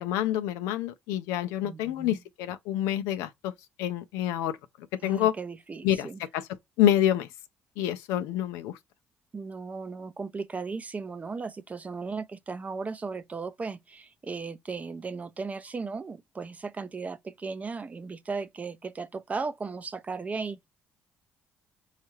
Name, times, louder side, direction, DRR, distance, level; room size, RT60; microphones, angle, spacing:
voice 1, 0.0-3.5 3.8-4.6 5.0-5.3 5.8-6.5 6.8-7.3 7.8-8.8, left 11 dB, 90° left, 0.4 m, -27 dB
voice 2, 1.6-2.2 5.0-6.2 9.3-20.7, right 4 dB, 30° right, 0.5 m, -36 dB
4.3 x 2.4 x 2.9 m
supercardioid pair, 70°, 5 cm